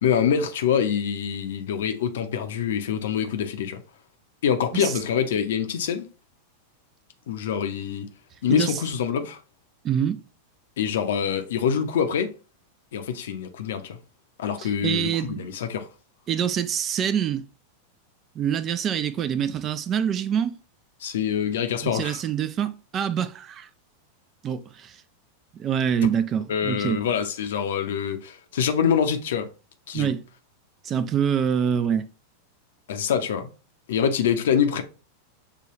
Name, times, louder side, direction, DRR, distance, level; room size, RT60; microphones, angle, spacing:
voice 1, 0.0-3.8 4.4-6.1 7.3-8.1 8.4-9.4 10.8-12.3 12.9-14.0 14.4-15.9 21.0-22.2 26.5-29.5 29.9-30.1 32.9-33.5 33.9-34.8, left 8 dB, 60° left, 0.6 m, -25 dB
voice 2, 8.5-8.8 9.8-10.2 14.6-15.4 16.3-17.5 18.4-20.6 21.8-23.7 24.4-25.0 25.5-27.0 29.9-30.2 30.8-32.1, right 8 dB, 30° right, 0.4 m, -25 dB
6.8 x 2.3 x 2.9 m
figure-of-eight pair, 90°, 0 cm